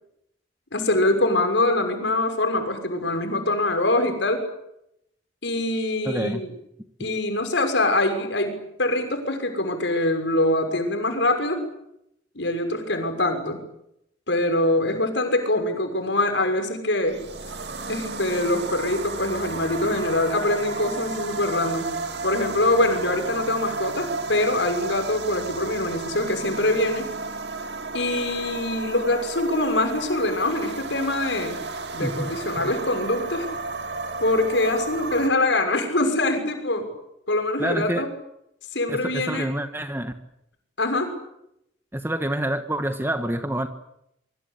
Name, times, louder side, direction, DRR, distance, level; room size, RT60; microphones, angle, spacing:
voice 1, 0.7-4.5 5.4-6.5 7.0-11.6 12.3-13.6 14.3-17.2 17.9-22.0 22.2-27.1 27.9-31.6 31.9-33.5 34.2-36.9 37.3-38.1 38.7-39.5 40.8-41.1, left 2 dB, 70° left, 6 dB, 6.3 m, -24 dB
voice 2, 6.0-6.4 32.0-32.3 37.6-38.1 38.9-40.1 41.9-43.7, right 1 dB, 10° right, 8 dB, 1.4 m, -27 dB
sound 1, 17.0-35.3, right 3 dB, 60° right, 2.3 m, -33 dB
26.0 x 23.5 x 8.4 m, 0.79 s
head